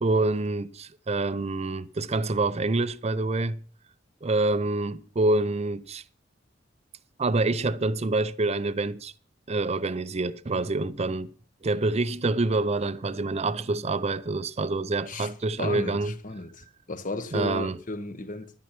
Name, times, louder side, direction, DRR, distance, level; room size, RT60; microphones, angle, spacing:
voice 1, 0.0-3.6 4.2-6.0 7.2-9.1 9.5-11.3 11.6-16.1 17.3-17.8, right 2 dB, 35° right, 0.6 m, -26 dB
voice 2, 15.6-18.5, left 2 dB, 45° left, 1.2 m, -34 dB
11.5 x 9.4 x 5.9 m
head